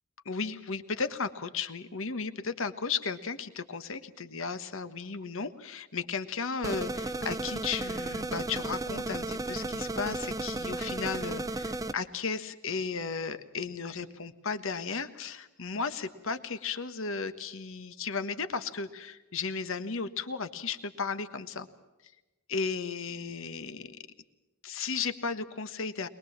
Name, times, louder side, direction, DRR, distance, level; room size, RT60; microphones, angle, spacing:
voice 1, 0.2-21.7 22.5-24.0 24.6-26.1, left 5 dB, 65° left, 11 dB, 1.4 m, -35 dB
sound 1, 6.6-11.9, right 2 dB, 15° right, 0.7 m, -34 dB
22.5 x 21.5 x 7.3 m, 1.1 s
head